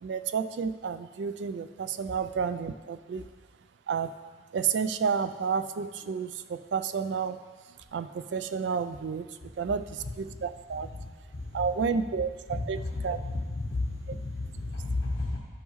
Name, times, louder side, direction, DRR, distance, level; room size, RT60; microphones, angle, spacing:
voice 1, 0.0-3.3 3.9-4.1 4.5-7.4 7.9-9.3 9.6-10.9 11.5-12.8 13.0-13.2, right 6 dB, 70° right, 11 dB, 0.3 m, -30 dB
voice 2, 12.8-15.4, left 2 dB, 65° left, -3 dB, 1.0 m, -32 dB
12.0 x 5.4 x 3.1 m, 1.5 s
head